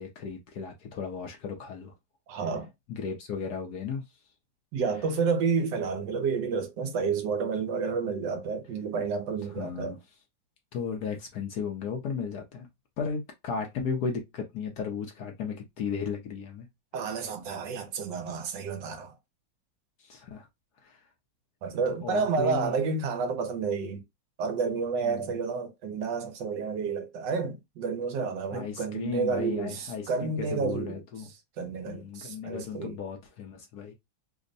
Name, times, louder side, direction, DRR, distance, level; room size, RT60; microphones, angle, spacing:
voice 1, 0.0-1.9 2.9-4.0 9.5-10.0 10.7-12.7 13.0-16.7 20.0-20.5 20.8-21.0 21.9-22.7 25.0-25.3 28.5-31.3 31.9-33.9, left 5 dB, 65° left, 1.1 m, -35 dB
voice 2, 2.3-2.7 4.7-10.0 16.9-19.1 21.6-24.0 24.4-31.0 31.6-33.0, right 5 dB, 70° right, 1.3 m, -30 dB
3.5 x 2.1 x 3.8 m
omnidirectional pair, 2.1 m